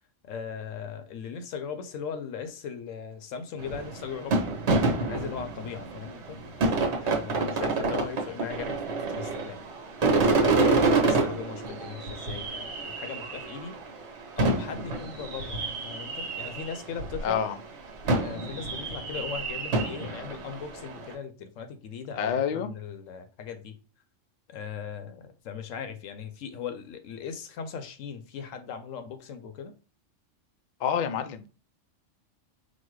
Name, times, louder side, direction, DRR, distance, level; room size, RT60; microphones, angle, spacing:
voice 1, 0.2-4.4 4.9-6.4 7.0-9.6 10.0-13.8 14.4-17.5 18.2-23.8 24.5-29.7, left 7 dB, 85° left, 1.0 m, -38 dB
sound 1, 3.6-17.3 18.0-21.1, right 3 dB, 65° right, 1.4 m, -27 dB
voice 2, 17.2-17.6 22.2-22.7 30.8-31.5, left 8 dB, 70° left, 0.4 m, -27 dB
4.1 x 2.2 x 4.6 m
omnidirectional pair, 1.3 m